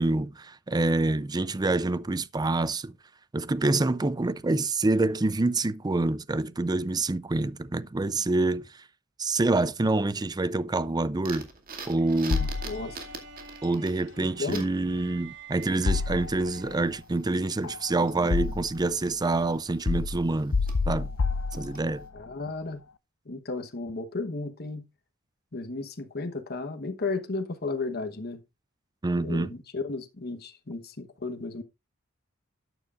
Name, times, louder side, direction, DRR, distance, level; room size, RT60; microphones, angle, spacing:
voice 1, 0.0-2.9 3.3-8.7 9.2-11.5 11.9-12.5 13.6-20.6 20.9-21.1 21.5-22.1 29.0-29.5, right 2 dB, 20° right, 0.5 m, -26 dB
sound 1, 11.3-22.1, right 4 dB, 45° right, 2.3 m, -47 dB
sound 2, 12.0-17.2, right 6 dB, 60° right, 1.5 m, -49 dB
sound 3, 12.3-13.2 15.9-16.7 17.6-19.0 19.9-22.1, left 4 dB, 65° left, 0.6 m, -29 dB
voice 2, 12.6-13.0 14.2-14.6 22.1-22.8 23.3-24.9 25.5-28.4 29.2-31.6, left 3 dB, 50° left, 1.1 m, -34 dB
12.5 x 9.1 x 2.4 m
head